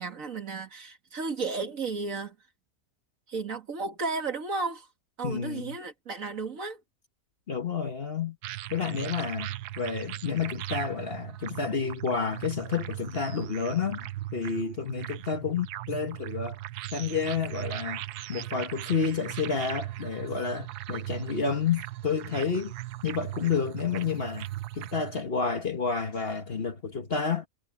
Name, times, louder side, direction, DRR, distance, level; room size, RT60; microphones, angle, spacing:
voice 1, 0.0-2.4 3.3-4.9 5.2-6.8, right 4 dB, 55° right, 2.3 m, -33 dB
voice 2, 5.2-5.8 7.5-8.4 8.7-16.6 16.9-18.0 18.3-22.7 23.0-24.5 24.7-27.5, left 5 dB, 40° left, 1.5 m, -30 dB
sound 1, 8.4-25.2, right 15 dB, 85° right, 1.2 m, -38 dB
omnidirectional pair, 1.7 m